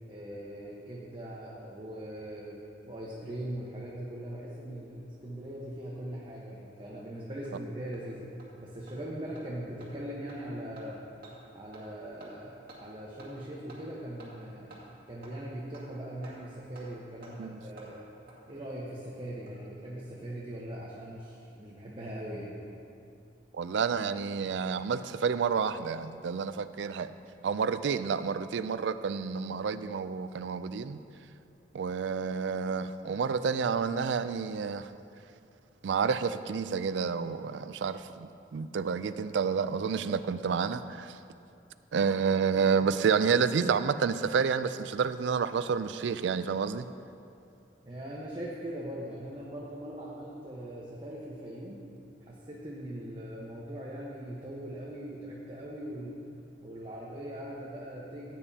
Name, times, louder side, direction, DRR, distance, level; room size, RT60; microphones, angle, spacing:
voice 1, 0.1-2.6 2.9-8.3 8.6-11.0 11.5-18.0 18.5-22.5 47.8-51.8 52.2-56.2 56.6-58.4, right 1 dB, 30° right, -5 dB, 1.1 m, -40 dB
Hammer, 6.5-6.6 7.0-7.1 7.4-7.5 7.9-8.0 8.4-8.5 8.9-9.0 9.4-9.5 9.8-9.9 10.3-10.4 10.8-10.9 11.2-11.3 11.7-11.9 12.2-12.3 12.7-12.8 13.2-13.3 13.7-13.8 14.2-14.3 14.7-14.8 15.2-15.3 15.7-15.9 16.2-16.3 16.8-16.9 17.2-17.3 17.8-17.9 18.3-18.4 19.3-19.7 19.9-20.0, right 2 dB, 55° right, 2.3 m, -51 dB
voice 2, 23.6-27.1 27.4-31.0 31.7-34.9 35.8-41.1 41.9-46.9, right 6 dB, 75° right, 13 dB, 0.4 m, -29 dB
15.0 x 9.2 x 2.8 m, 2.5 s
head